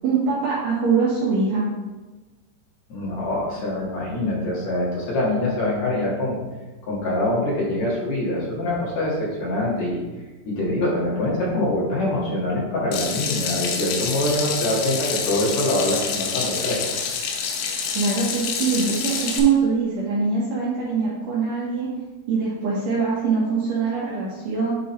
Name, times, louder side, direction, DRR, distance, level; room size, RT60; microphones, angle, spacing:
voice 1, 0.0-1.7 17.9-21.9 22.3-24.7, right 5 dB, 70° right, -7 dB, 2.1 m, -23 dB
voice 2, 2.9-6.4 6.8-10.0 10.5-16.8, left 1 dB, 55° left, -5 dB, 2.2 m, -24 dB
Water tap faucet / Sink (filling or washing), 12.9-19.4, left 6 dB, 85° left, 3.2 m, -27 dB
9.8 x 3.8 x 4.2 m, 1.2 s
omnidirectional pair, 5.3 m